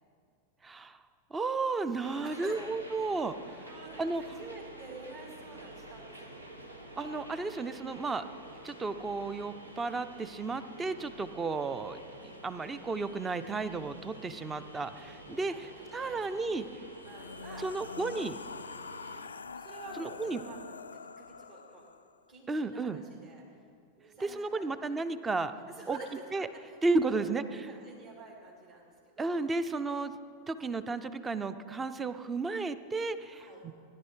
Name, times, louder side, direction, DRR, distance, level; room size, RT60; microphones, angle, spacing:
voice 1, 0.6-1.0 1.3-3.7 4.0-4.2 7.0-8.2 8.6-12.0 12.4-16.7 17.6-18.4 20.0-20.4 22.5-23.0 24.2-25.5 25.9-26.0 26.3-26.5 26.8-27.4 29.2-30.2 30.5-33.7, right 3 dB, 15° right, 12 dB, 0.6 m, -33 dB
sound 1, 2.0-19.3, right 1 dB, 80° right, 1.2 m, -49 dB
voice 2, 2.2-2.6 3.6-6.4 15.4-16.7 17.0-18.3 19.0-19.2 19.5-21.9 22.3-23.7 24.0-24.8 25.7-27.3 27.6-29.4 29.8-29.9 33.3-33.6, right 3 dB, 45° right, -5 dB, 2.4 m, -50 dB
sound 2, 16.9-22.2, left 5 dB, 75° left, 0.3 m, -45 dB
16.5 x 11.0 x 4.7 m, 2.3 s
figure-of-eight pair, 90°, 0 cm